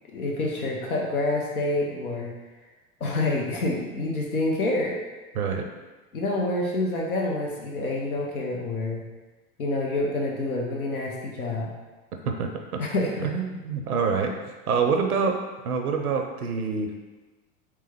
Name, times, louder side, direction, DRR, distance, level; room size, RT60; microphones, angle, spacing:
voice 1, 0.1-2.3 3.0-5.0 6.1-9.0 9.6-11.7 12.8-13.3, left 2 dB, 75° left, -1 dB, 0.7 m, -27 dB
voice 2, 5.3-5.7 12.3-12.5 13.2-14.3 14.7-15.4 15.6-16.9, right 5 dB, 80° right, 4 dB, 0.5 m, -25 dB
3.3 x 3.0 x 3.4 m, 1.2 s
figure-of-eight pair, 80°, 43 cm